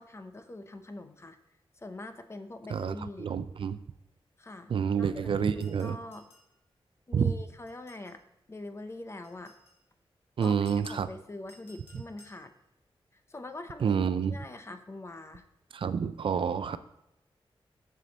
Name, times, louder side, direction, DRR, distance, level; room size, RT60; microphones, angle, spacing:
voice 1, 0.0-1.4 1.8-3.3 4.4-6.3 7.1-8.2 8.5-9.5 10.4-12.5 13.3-15.4, left 2 dB, 25° left, 8 dB, 0.7 m, -43 dB
voice 2, 2.7-3.8 4.7-6.0 7.1-7.3 10.4-11.1 13.8-14.3 15.7-16.8, right 7 dB, 60° right, 13 dB, 0.4 m, -28 dB
sound 1, 5.6-6.5 7.7-8.2 9.2-9.8 10.4-11.1 11.5-12.4, left 1 dB, 75° left, 2.1 m, -57 dB
7.4 x 6.8 x 4.0 m, 0.89 s
wide cardioid pair, 125°, 10 cm